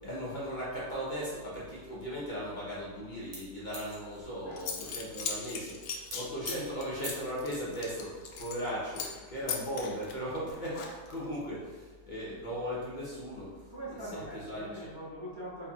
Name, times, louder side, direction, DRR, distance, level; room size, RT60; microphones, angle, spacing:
voice 1, 0.0-5.7 6.1-13.6 14.1-14.9, equal, 40° left, -8 dB, 0.7 m, -37 dB
sound 1, 3.3-4.7 5.5-5.6 5.9-6.2 6.5-6.6 7.0-7.1, right 2 dB, 60° right, 1.4 m, -42 dB
Zipper (clothing) / Coin (dropping), 4.2-4.3 4.6-8.7 8.9-9.2 9.5-11.2, left 6 dB, 70° left, 0.9 m, -39 dB
voice 2, 4.4-5.1 13.7-15.7, right 1 dB, 30° right, -10 dB, 0.4 m, -43 dB
4.2 x 3.5 x 2.3 m, 1.3 s
omnidirectional pair, 2.0 m